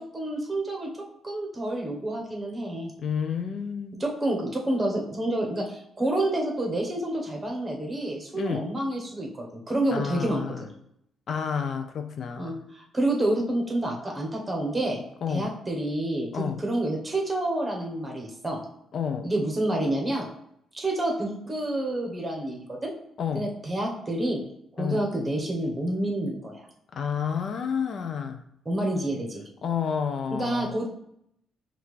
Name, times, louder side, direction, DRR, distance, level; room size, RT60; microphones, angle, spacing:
voice 1, 0.0-2.9 4.0-10.7 12.4-15.0 15.3-18.6 19.2-20.3 20.7-22.9 23.3-24.4 24.7-26.6 28.7-29.4 30.4-30.9, right 1 dB, 20° right, 0 dB, 1.0 m, -28 dB
voice 2, 3.0-4.0 8.3-8.7 9.9-10.6 11.3-12.6 15.2-15.5 16.3-16.6 18.9-19.3 23.2-23.5 24.8-25.0 26.9-28.4 29.6-30.7, left 7 dB, 50° left, 7 dB, 0.3 m, -30 dB
5.5 x 2.3 x 3.2 m, 0.74 s
cardioid pair, 125°, 0 cm